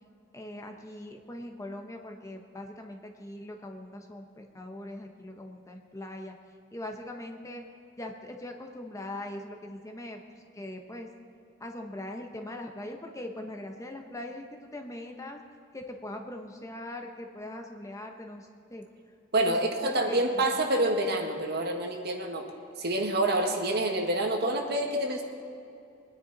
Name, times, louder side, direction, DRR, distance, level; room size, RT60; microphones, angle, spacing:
voice 1, 0.3-6.3 6.7-7.6 8.0-10.2 10.5-11.1 11.6-15.4 15.7-18.8 19.4-20.4, left 1 dB, 15° left, 3 dB, 1.0 m, -41 dB
voice 2, 19.3-22.4 22.8-25.2, right 1 dB, 55° right, 3 dB, 1.5 m, -27 dB
22.5 x 10.0 x 4.1 m, 2.6 s
head